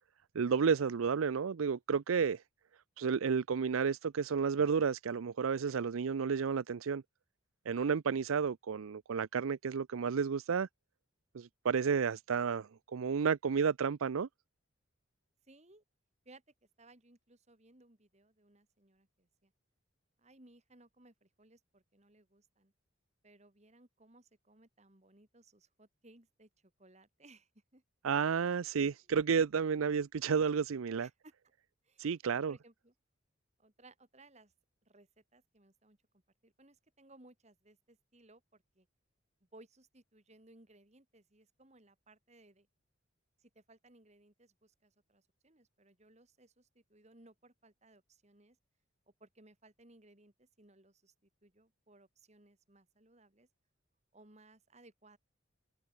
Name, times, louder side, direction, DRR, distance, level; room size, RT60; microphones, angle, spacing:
voice 1, 0.3-2.4 3.0-7.0 7.7-10.7 11.3-14.3 28.0-31.1 32.0-32.5, right 6 dB, 90° right, 0.5 m, -31 dB
voice 2, 15.5-15.8 16.2-16.4 16.8-19.5 20.2-22.7 23.2-27.8 29.7-29.8 31.0-31.3 31.8-32.9 33.6-34.5 34.9-36.0 36.4-38.9 39.5-42.7 43.4-48.6 49.2-53.5 54.1-55.2, right 2 dB, 35° right, 2.6 m, -62 dB
head